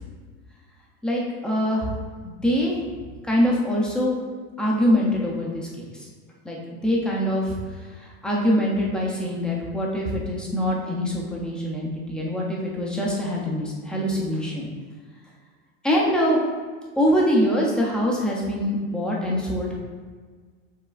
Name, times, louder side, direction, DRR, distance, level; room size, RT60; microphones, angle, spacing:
voice 1, 1.0-1.9 2.2-2.8 3.2-4.2 4.6-6.1 6.4-7.5 8.0-14.7 15.8-16.4 17.0-19.8, equal, 5° left, -3 dB, 0.3 m, -24 dB
5.6 x 4.0 x 2.3 m, 1.5 s
supercardioid pair, 165°, 32 cm